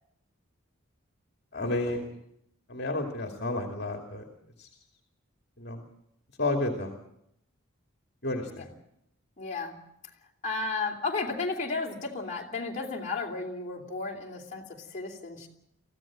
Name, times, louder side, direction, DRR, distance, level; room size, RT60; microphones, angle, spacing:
voice 1, 1.5-2.1 2.7-4.3 4.6-4.7 5.6-5.8 6.4-6.9 8.2-8.7, left 2 dB, 50° left, 3 dB, 2.6 m, -31 dB
voice 2, 9.4-9.7 10.4-14.6 14.9-15.5, left 3 dB, 35° left, -1 dB, 3.1 m, -33 dB
23.5 x 15.5 x 7.6 m, 0.78 s
head